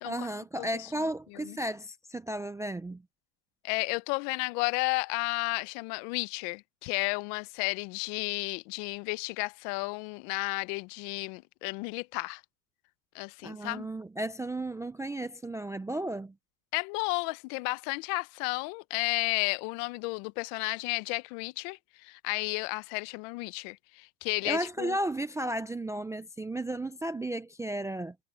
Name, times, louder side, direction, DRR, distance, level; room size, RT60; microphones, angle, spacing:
voice 1, 0.0-3.0 13.4-16.3 24.4-28.2, right 1 dB, 5° right, 0.3 m, -34 dB
voice 2, 3.6-12.4 13.1-13.9 16.7-25.0, left 26 dB, 70° left, 0.8 m, -33 dB
cardioid pair, 140°, 48 cm